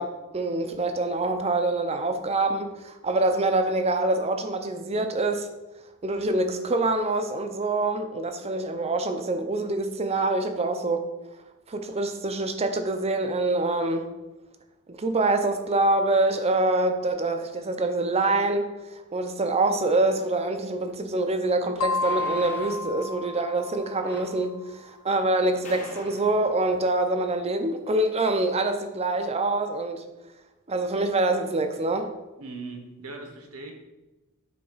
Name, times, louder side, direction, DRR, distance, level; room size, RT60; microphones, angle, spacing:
voice 1, 0.0-5.5 6.0-11.1 11.7-14.1 14.9-30.0 30.7-32.1, right 2 dB, 30° right, 7 dB, 0.6 m, -25 dB
sound 1, 20.9-21.0 21.9-22.9 24.0-24.5 25.4-25.6 25.9-26.2 26.7-26.8, equal, 10° left, 0.8 m, -43 dB
sound 2, 21.8-24.3, left 3 dB, 70° left, 0.4 m, -31 dB
sound 3, 25.6-28.0, left 2 dB, 35° left, 1.2 m, -46 dB
voice 2, 32.4-33.7, right 3 dB, 75° right, 3 dB, 1.3 m, -39 dB
8.6 x 3.5 x 5.5 m, 1.1 s
head